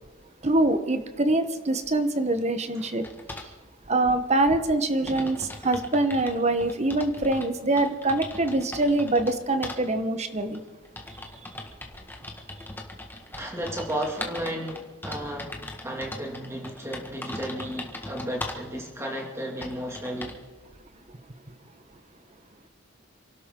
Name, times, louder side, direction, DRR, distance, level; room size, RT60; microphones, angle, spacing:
voice 1, 0.4-3.0 3.9-10.6, right 2 dB, 35° right, 9 dB, 1.1 m, -24 dB
sound 1, 3.0-3.5 4.4-4.5 4.7-4.8 5.1-7.5 7.8-9.3 9.6-9.8 10.5-18.7 19.2-19.3 19.6-20.4, left 2 dB, 10° left, 1.7 m, -39 dB
voice 2, 13.4-20.4, right 1 dB, 15° right, 0 dB, 2.4 m, -34 dB
28.0 x 12.5 x 3.8 m, 1.4 s
head